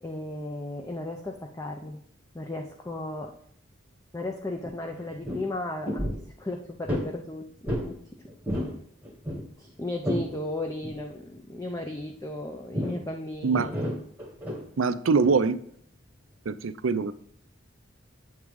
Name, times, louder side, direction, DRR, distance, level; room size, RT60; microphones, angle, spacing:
voice 1, 0.0-2.0 2.3-3.3 4.1-6.1 6.4-8.0 8.5-8.6 9.3-13.7, left 2 dB, 15° left, 2 dB, 0.6 m, -35 dB
sound 1, 4.6-4.7 5.0-5.5 5.8-6.3 6.9-7.1 7.7-7.9 8.3-8.8 9.0-10.3 10.8-11.0 12.7-13.0 13.5-14.6 15.2-15.4, equal, 10° right, 1.2 m, -31 dB
voice 2, 14.8-15.6 16.5-17.1, right 4 dB, 90° right, 13 dB, 0.5 m, -23 dB
8.1 x 3.7 x 4.7 m, 0.66 s
head